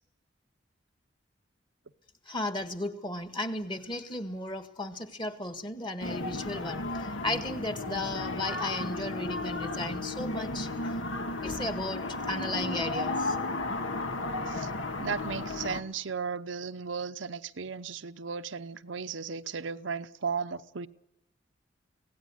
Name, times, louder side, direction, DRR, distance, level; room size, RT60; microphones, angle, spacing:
voice 1, 2.3-11.0 11.4-13.4, left 2 dB, 25° left, 1.7 m, -35 dB
sound 1, 6.0-15.8, left 2 dB, 90° left, 1.7 m, -34 dB
voice 2, 15.0-20.9, right 5 dB, 80° right, 0.8 m, -35 dB
25.0 x 17.5 x 9.8 m
head